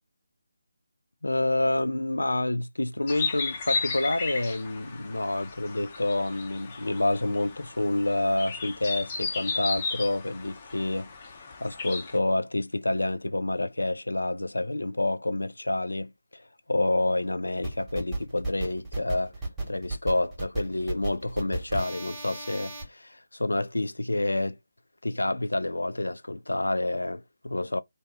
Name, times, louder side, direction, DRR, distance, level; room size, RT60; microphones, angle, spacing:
voice 1, 1.2-11.1 11.6-16.4 16.7-19.3 19.7-24.6 25.0-27.8, left 2 dB, 80° left, 0.3 m, -28 dB
sound 1, 3.1-12.2, left 4 dB, 30° left, 0.6 m, -35 dB
sound 2, 17.6-22.8, right 2 dB, 10° right, 1.0 m, -34 dB
2.7 x 2.0 x 3.1 m
figure-of-eight pair, 155°, 0 cm